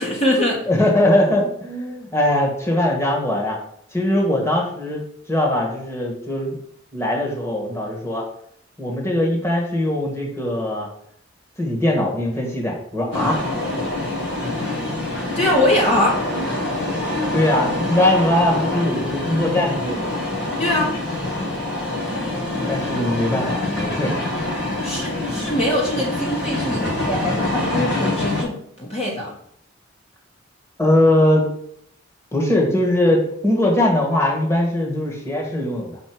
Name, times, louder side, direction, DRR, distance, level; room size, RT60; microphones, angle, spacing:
voice 1, 0.0-0.6 15.3-16.2 20.6-20.9 24.8-29.3, left 1 dB, 30° left, -3 dB, 1.4 m, -22 dB
voice 2, 0.7-3.6 3.9-5.0 5.3-6.6 6.9-8.2 8.8-10.9 11.6-13.4 17.3-20.2 22.5-24.1 30.8-31.5 32.3-36.0, left 1 dB, 15° left, -1 dB, 1.7 m, -20 dB
sound 1, 13.1-28.4, left 1 dB, 65° left, 1.9 m, -25 dB
6.5 x 4.3 x 6.1 m, 0.69 s
head